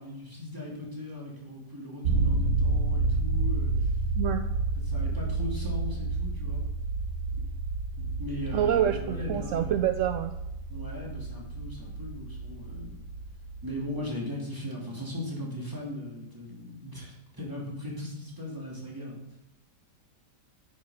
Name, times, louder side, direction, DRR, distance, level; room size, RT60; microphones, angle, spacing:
voice 1, 0.0-3.9 4.8-6.6 8.0-9.8 10.7-13.0 13.6-19.2, left 1 dB, 10° right, -4 dB, 2.7 m, -38 dB
sound 1, 2.0-14.0, right 3 dB, 50° right, 1.5 m, -30 dB
voice 2, 4.1-4.5 8.5-10.3, right 9 dB, 70° right, 8 dB, 0.7 m, -27 dB
10.0 x 6.3 x 5.0 m, 0.88 s
omnidirectional pair, 1.8 m